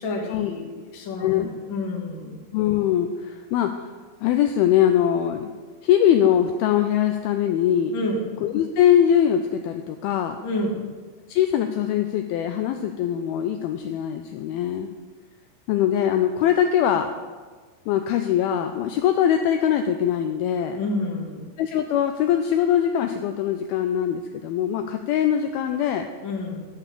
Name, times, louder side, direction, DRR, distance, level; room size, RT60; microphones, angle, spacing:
voice 1, 0.0-2.4 7.9-8.2 10.4-10.8 20.7-21.5 26.2-26.6, left 2 dB, 50° left, -1 dB, 1.5 m, -29 dB
voice 2, 1.2-1.5 2.5-3.9 4.2-5.5 5.8-8.0 8.4-10.4 11.3-14.9 15.7-17.1 17.9-20.8 21.6-26.1, left 10 dB, 85° left, 6 dB, 2.2 m, -22 dB
13.0 x 5.8 x 6.8 m, 1.4 s
omnidirectional pair, 4.9 m